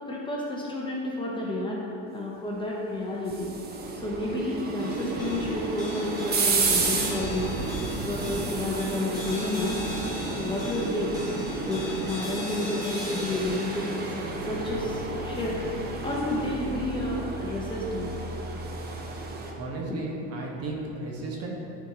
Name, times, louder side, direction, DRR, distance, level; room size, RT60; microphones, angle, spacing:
voice 1, 0.0-1.8 2.1-3.5 4.0-7.5 8.0-10.0 10.4-11.2 11.7-15.6 16.0-18.2 19.9-20.0, left 2 dB, 15° left, -4 dB, 1.0 m, -31 dB
sound 1, 2.9-19.5, right 3 dB, 25° right, 0.7 m, -32 dB
sound 2, 4.8-17.3, left 1 dB, 10° right, 1.5 m, -40 dB
voice 2, 19.5-21.5, right 2 dB, 40° right, -2 dB, 1.2 m, -34 dB
9.3 x 4.1 x 3.0 m, 2.7 s
supercardioid pair, 115°, 36 cm